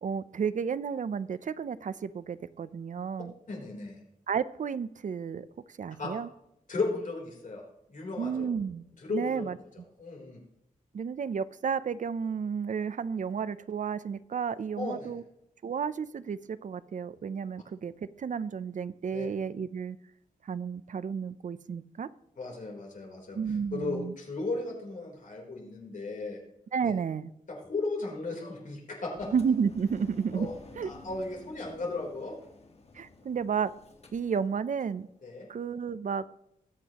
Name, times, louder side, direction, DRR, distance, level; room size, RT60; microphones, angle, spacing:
voice 1, 0.0-3.3 4.3-5.5 5.8-6.3 8.2-8.8 9.1-9.6 10.9-15.2 15.6-17.9 18.2-20.0 20.5-22.1 23.3-24.1 26.7-27.3 29.3-30.5 30.8-30.9 32.9-33.7 34.1-35.1 35.5-36.2, right 6 dB, 60° right, 15 dB, 0.5 m, -32 dB
voice 2, 3.5-4.0 6.0-6.1 6.7-7.6 7.9-8.5 9.0-9.5 10.0-10.4 14.8-15.1 19.1-19.3 22.4-23.4 23.7-26.4 26.8-26.9 27.5-29.3 30.3-30.5 30.8-32.4 35.2-35.5, left 3 dB, 65° left, 0 dB, 3.6 m, -35 dB
Engine, 29.2-35.0, left 3 dB, 45° left, 1.6 m, -51 dB
20.5 x 8.2 x 3.0 m, 0.81 s
wide cardioid pair, 100°, 14 cm